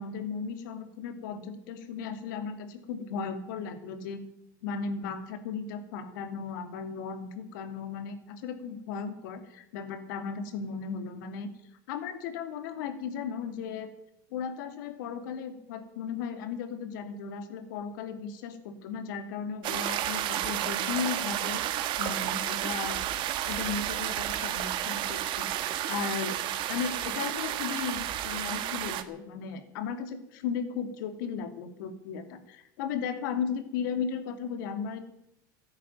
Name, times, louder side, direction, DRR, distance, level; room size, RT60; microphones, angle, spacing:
voice 1, 0.0-4.2 4.6-11.5 11.9-13.9 14.3-21.6 22.0-23.0 23.4-26.3 26.7-35.0, left 6 dB, 75° left, 8 dB, 2.6 m, -36 dB
sound 1, 19.6-29.0, right 12 dB, 50° right, 1.6 m, -31 dB
14.0 x 10.5 x 9.2 m, 0.80 s
supercardioid pair, 115°, 10 cm